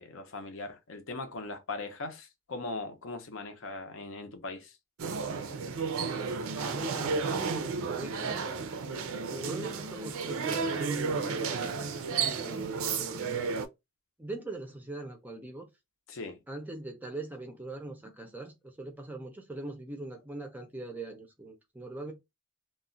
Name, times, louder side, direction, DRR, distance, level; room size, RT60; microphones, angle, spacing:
voice 1, 0.0-4.8 16.1-16.4, left 3 dB, 60° left, 0.6 m, -40 dB
sound 1, 5.0-13.7, right 5 dB, 75° right, 0.4 m, -32 dB
voice 2, 6.6-8.5 9.3-11.7 12.2-13.5 14.2-15.7 16.5-22.1, right 2 dB, 10° right, 0.4 m, -41 dB
2.3 x 2.1 x 3.7 m
head